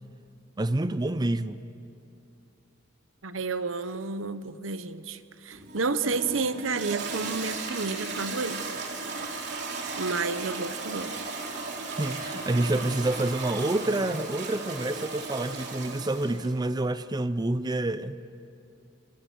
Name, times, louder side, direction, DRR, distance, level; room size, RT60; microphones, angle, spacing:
voice 1, 0.6-1.6 12.0-18.2, right 1 dB, 20° right, 0.6 m, -28 dB
voice 2, 3.2-8.8 9.9-11.1, right 4 dB, 80° right, 1.0 m, -31 dB
Toilet flush, 5.5-16.6, right 3 dB, 60° right, 3.3 m, -36 dB
28.5 x 26.0 x 6.3 m
head